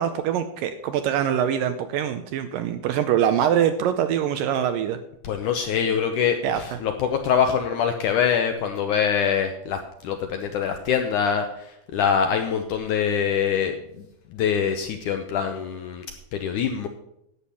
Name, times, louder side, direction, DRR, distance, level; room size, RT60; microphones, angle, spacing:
voice 1, 0.0-5.0 6.4-6.6, right 9 dB, 80° right, 9 dB, 2.1 m, -23 dB
voice 2, 5.2-11.5 11.9-13.8 14.3-16.1 16.3-16.9, left 7 dB, 75° left, 6 dB, 1.9 m, -24 dB
11.5 x 8.6 x 5.6 m, 0.79 s
omnidirectional pair, 4.5 m